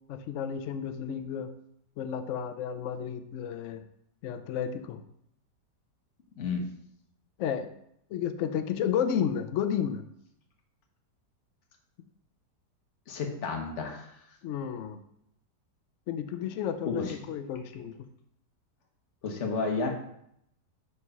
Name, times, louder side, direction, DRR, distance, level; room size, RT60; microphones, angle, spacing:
voice 1, 0.1-1.5 2.0-3.8 4.2-5.0 7.4-7.7 8.1-10.0 14.4-15.0 16.1-17.9, left 8 dB, 90° left, 9 dB, 0.6 m, -32 dB
voice 2, 13.1-14.1 16.8-17.2 19.2-19.9, left 4 dB, 50° left, 2 dB, 1.2 m, -31 dB
4.9 x 4.6 x 5.4 m, 0.74 s
omnidirectional pair, 1.9 m